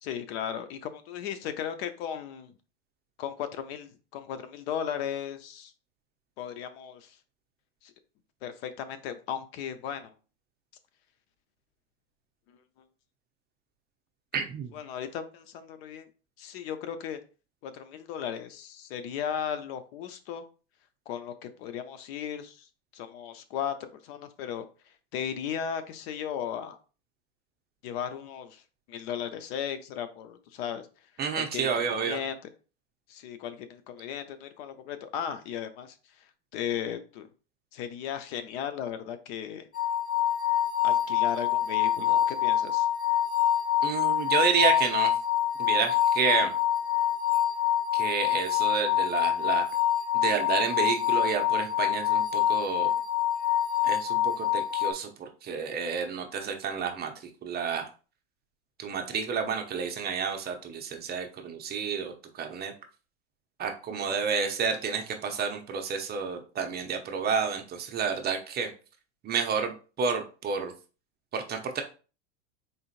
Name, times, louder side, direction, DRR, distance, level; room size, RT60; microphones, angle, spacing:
voice 1, 0.0-2.5 3.2-5.7 6.4-7.1 8.4-10.1 12.5-12.6 14.7-16.1 16.4-17.2 17.6-20.5 21.1-22.6 22.9-24.6 25.1-26.8 27.8-28.6 28.9-30.9 31.3-32.4 33.1-36.0 36.5-37.3 37.7-39.7 40.8-42.9 64.1-64.2, left 8 dB, 60° left, 10 dB, 0.7 m, -36 dB
voice 2, 14.3-14.7 31.2-32.2 43.8-45.1 45.6-46.5 47.9-49.7 50.1-52.9 53.8-57.1 57.4-57.9 58.8-62.7 63.6-68.7 69.2-70.7 71.3-71.8, right 6 dB, 25° right, 4 dB, 0.7 m, -30 dB
sound 1, 39.7-54.9, left 11 dB, 25° left, 0.9 m, -26 dB
4.0 x 3.8 x 2.5 m, 0.35 s
hypercardioid pair, 105°, 35 cm